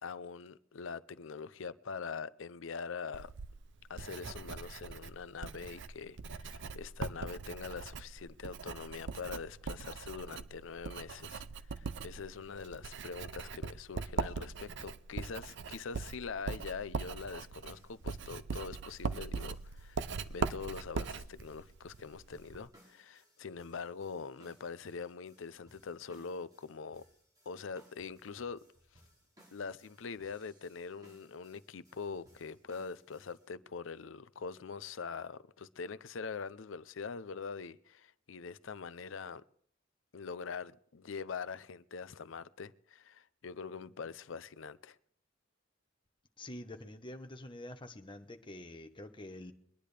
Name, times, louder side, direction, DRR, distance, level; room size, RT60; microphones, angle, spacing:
voice 1, 0.0-3.3 3.9-11.4 11.7-27.0 27.5-28.6 29.5-39.4 40.1-45.0, left 5 dB, 75° left, 0.6 m, -43 dB
Writing, 3.1-22.7, right 4 dB, 65° right, 0.6 m, -41 dB
sound 1, 17.6-33.5, equal, 20° right, 4.8 m, -66 dB
voice 2, 46.4-49.5, left 1 dB, 25° left, 1.0 m, -47 dB
23.5 x 10.0 x 3.4 m
head